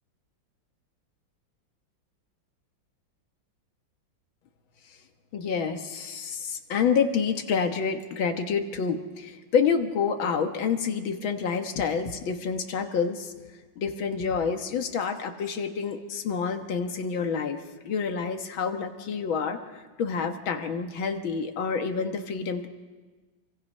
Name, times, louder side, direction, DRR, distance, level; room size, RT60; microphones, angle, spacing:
voice 1, 5.3-13.3 13.8-22.7, left 6 dB, 80° left, 6 dB, 2.1 m, -28 dB
27.5 x 24.5 x 5.5 m, 1.3 s
omnidirectional pair, 2.2 m